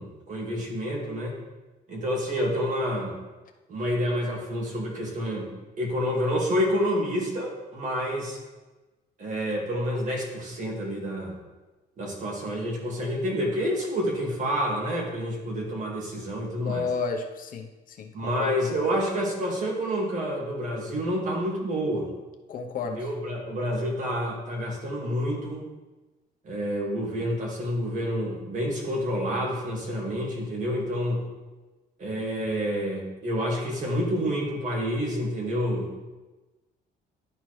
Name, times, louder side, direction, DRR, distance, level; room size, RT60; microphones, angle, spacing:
voice 1, 0.0-1.4 1.9-3.2 3.7-5.5 5.8-8.4 9.2-11.3 12.0-16.9 18.1-22.1 22.8-25.6 26.4-31.2 32.0-35.9, equal, 50° right, -1 dB, 2.0 m, -28 dB
voice 2, 16.6-18.5 22.5-23.0, left 5 dB, 55° left, 3 dB, 0.8 m, -32 dB
11.0 x 4.4 x 3.2 m, 1.2 s
cardioid pair, 110°, 17 cm